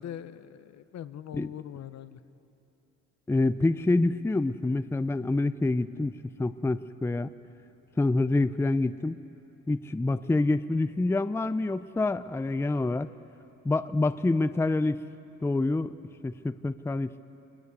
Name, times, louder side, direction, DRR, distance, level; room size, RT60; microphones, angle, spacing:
voice 1, 0.0-2.2, left 10 dB, 60° left, 13 dB, 0.9 m, -41 dB
voice 2, 3.3-7.3 8.0-9.2 9.7-13.1 13.6-15.0 15.4-15.9 16.2-17.1, left 2 dB, 10° left, 13 dB, 0.5 m, -27 dB
24.5 x 20.5 x 8.2 m, 3.0 s
cardioid pair, 90°, 30 cm